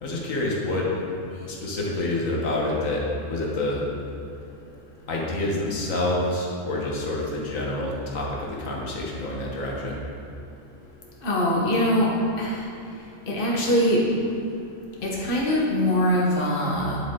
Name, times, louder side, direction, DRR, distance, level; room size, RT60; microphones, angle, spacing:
voice 1, 0.0-3.8 5.1-10.0, left 2 dB, 85° left, -3 dB, 1.7 m, -27 dB
voice 2, 11.2-12.1 12.4-12.6 13.3-14.0 15.0-17.0, equal, 45° left, -4 dB, 1.5 m, -22 dB
9.7 x 7.6 x 3.8 m, 2.5 s
omnidirectional pair, 1.3 m